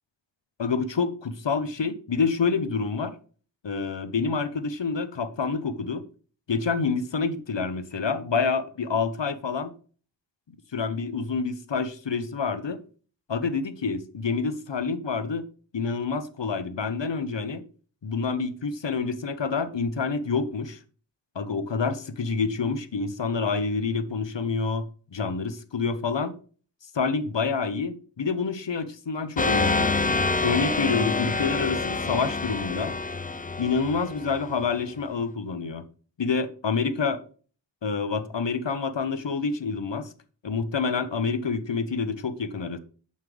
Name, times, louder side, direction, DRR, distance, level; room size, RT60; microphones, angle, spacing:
voice 1, 0.6-3.1 3.6-6.0 6.5-9.7 10.7-12.8 13.3-15.4 15.7-17.6 18.0-20.8 21.3-26.4 26.9-30.0 30.4-33.0 33.6-35.8 36.2-37.2 37.8-40.1 40.4-42.8, left 4 dB, 75° left, 0.9 m, -27 dB
sound 1, 29.4-34.8, left 3 dB, 20° left, 0.4 m, -27 dB
7.6 x 5.6 x 3.3 m
wide cardioid pair, 40°, 45 cm